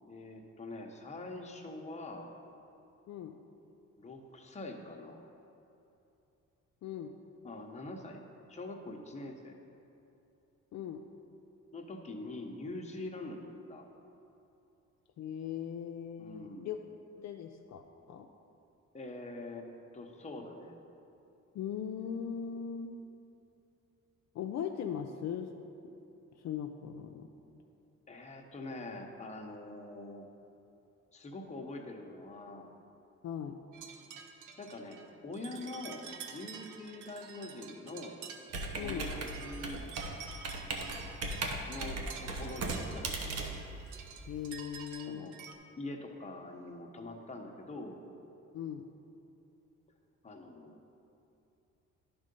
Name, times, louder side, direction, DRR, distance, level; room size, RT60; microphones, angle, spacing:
voice 1, 0.1-2.3 4.0-5.2 7.4-8.2 8.5-9.6 11.7-13.9 16.2-16.7 18.9-19.7 19.9-20.7 28.1-30.3 31.1-32.7 34.6-36.0 36.3-38.2 38.8-39.8 41.6-43.6 45.0-45.3 45.8-48.0 50.2-50.8, left 2 dB, 25° left, 2 dB, 0.9 m, -44 dB
voice 2, 3.1-3.4 6.8-7.1 10.7-11.0 15.2-16.8 17.2-18.3 21.5-23.0 24.3-25.5 26.4-27.3 33.2-33.6 38.8-39.1 44.3-45.3 48.5-48.9, left 8 dB, 60° left, 4 dB, 0.5 m, -39 dB
sound 1, 33.7-45.5, right 7 dB, 85° right, 0.6 m, -49 dB
Computer keyboard, 38.5-44.4, right 2 dB, 55° right, 1.0 m, -38 dB
10.5 x 3.7 x 5.3 m, 2.8 s
cardioid pair, 90°, 30 cm